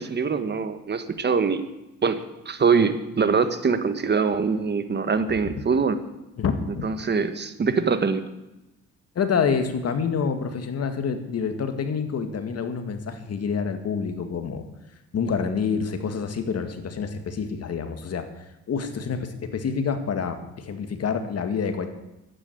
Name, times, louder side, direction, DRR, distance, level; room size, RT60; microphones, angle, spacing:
voice 1, 0.0-1.7 2.0-6.0 6.8-8.2, right 5 dB, 35° right, 10 dB, 1.5 m, -23 dB
voice 2, 6.4-6.9 9.2-14.6 15.1-21.9, left 6 dB, 55° left, 8 dB, 2.0 m, -27 dB
11.5 x 9.6 x 9.2 m, 0.94 s
cardioid pair, 90°, 30 cm